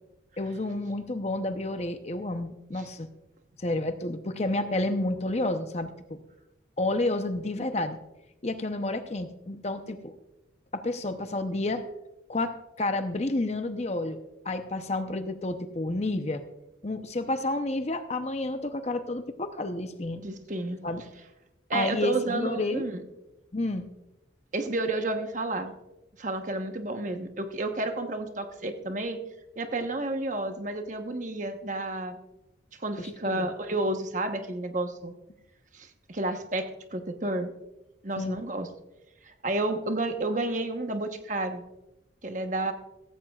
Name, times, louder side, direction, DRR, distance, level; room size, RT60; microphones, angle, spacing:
voice 1, 0.4-3.1 3.6-6.2 6.8-8.0 8.4-10.2 10.7-11.8 12.3-16.4 16.8-20.2 20.8-21.0 21.7-22.9 23.5-23.9 33.0-33.5 38.2-38.4, left 2 dB, 35° left, 8 dB, 0.7 m, -30 dB
voice 2, 20.2-20.8 21.7-23.0 24.5-25.7 26.2-29.2 29.6-32.2 32.8-35.1 35.7-37.5 38.0-38.7 39.2-41.6 42.2-42.7, right 2 dB, 40° right, 6 dB, 1.1 m, -31 dB
15.5 x 15.5 x 2.4 m, 0.94 s
head